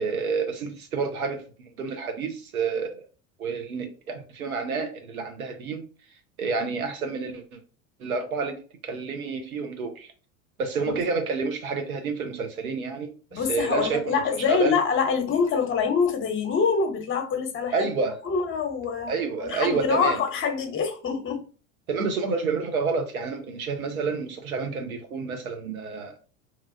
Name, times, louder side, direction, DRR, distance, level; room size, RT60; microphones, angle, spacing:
voice 1, 0.0-1.4 1.8-3.0 3.4-5.9 6.4-7.6 8.0-8.6 8.8-10.1 10.6-14.2 14.5-14.8 17.7-18.2 19.1-20.2 21.9-26.1, right 4 dB, 90° right, 0.8 m, -29 dB
voice 2, 13.3-17.9 18.2-19.1 19.4-21.4, left 6 dB, 30° left, 0.9 m, -25 dB
3.1 x 2.4 x 2.5 m
hypercardioid pair, 85°, 41 cm